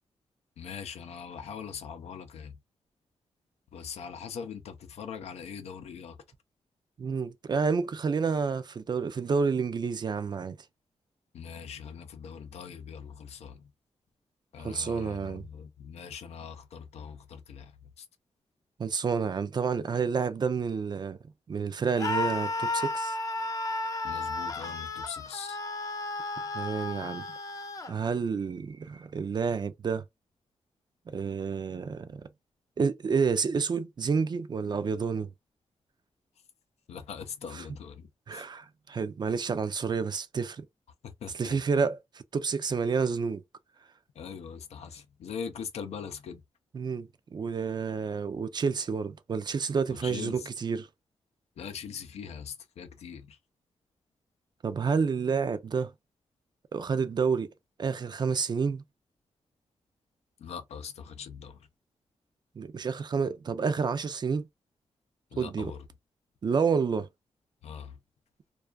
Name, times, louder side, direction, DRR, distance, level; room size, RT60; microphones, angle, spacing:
voice 1, 0.6-2.5 3.7-6.2 11.3-13.7 14.5-18.1 24.0-25.6 36.9-38.5 41.0-41.6 44.2-46.4 49.9-50.5 51.6-53.4 60.4-61.7 65.3-65.9 67.6-68.0, left 7 dB, 90° left, 0.5 m, -41 dB
voice 2, 7.0-10.6 14.6-15.5 18.8-21.2 21.5-23.2 26.5-27.2 27.9-30.0 31.1-32.3 32.8-35.3 37.5-37.6 38.3-40.6 41.4-43.4 46.7-50.9 54.6-55.9 56.7-57.5 57.8-58.8 62.6-64.5 65.4-65.7 66.4-67.1, right 5 dB, 45° right, 0.4 m, -29 dB
Screaming, 22.0-27.9, left 2 dB, 35° left, 0.5 m, -33 dB
2.4 x 2.3 x 2.3 m
cardioid pair, 90°, 11 cm